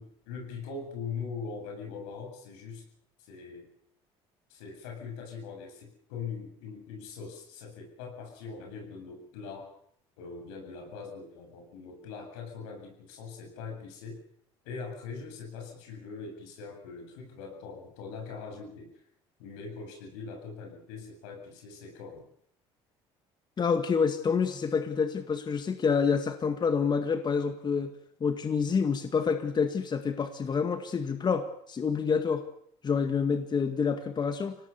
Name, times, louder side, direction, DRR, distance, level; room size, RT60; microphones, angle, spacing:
voice 1, 0.0-2.9 3.2-3.7 4.5-9.7 10.2-14.2 14.6-19.0 19.4-22.3, left 5 dB, 85° left, 3 dB, 7.7 m, -41 dB
voice 2, 23.6-27.9 28.2-32.4 32.8-34.6, left 6 dB, 35° left, 8 dB, 2.0 m, -28 dB
25.5 x 18.0 x 7.0 m, 0.66 s
supercardioid pair, 85°, 13 cm